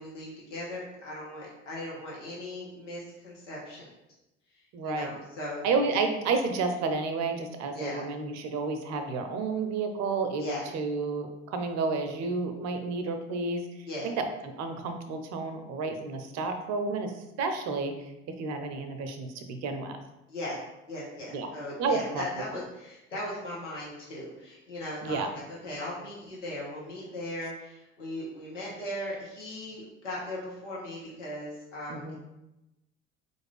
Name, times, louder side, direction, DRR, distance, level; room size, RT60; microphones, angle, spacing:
voice 1, 0.0-3.9 4.8-5.6 7.7-8.0 10.4-10.7 13.9-14.1 20.3-20.6 20.9-32.2, left 1 dB, 85° left, -6 dB, 1.0 m, -38 dB
voice 2, 4.7-5.1 5.6-14.3 14.6-17.1 17.4-17.9 18.4-20.0 21.3-21.5 21.8-22.4 25.0-25.3 31.9-32.2, right 4 dB, 50° right, 6 dB, 0.6 m, -31 dB
3.9 x 2.5 x 3.2 m, 0.94 s
figure-of-eight pair, 60°, 36 cm